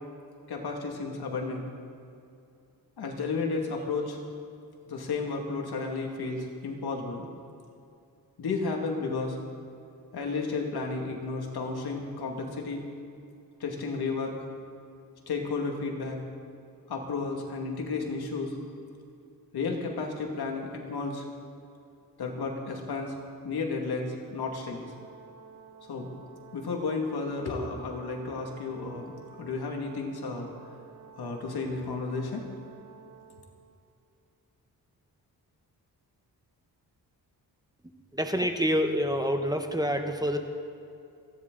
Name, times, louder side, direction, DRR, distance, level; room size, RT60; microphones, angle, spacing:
voice 1, 0.5-1.7 3.0-4.2 4.8-7.3 8.4-9.4 10.1-12.8 13.6-14.4 15.3-16.2 16.9-18.6 19.5-21.2 22.2-23.1 23.4-24.9 25.9-26.1 26.5-30.5 31.2-32.4, left 4 dB, 80° left, 1 dB, 2.4 m, -32 dB
Brass instrument, 24.6-33.5, right 6 dB, 40° right, 3.7 m, -51 dB
voice 2, 38.1-40.4, equal, 10° right, 5 dB, 1.1 m, -27 dB
28.5 x 11.0 x 4.0 m, 2.6 s
wide cardioid pair, 115°, 37 cm